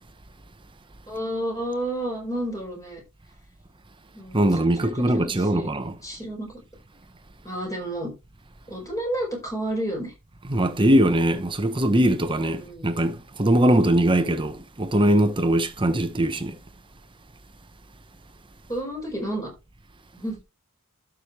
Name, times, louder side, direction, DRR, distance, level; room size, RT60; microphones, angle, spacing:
voice 1, 1.1-3.0 4.1-5.7 6.0-6.6 7.4-8.1 8.7-10.1 12.5-12.9 18.7-19.5 20.1-20.4, right 1 dB, 15° left, 4.7 m, -31 dB
voice 2, 4.3-5.9 10.5-16.5, right 1 dB, 20° right, 1.0 m, -21 dB
12.0 x 6.3 x 3.2 m
head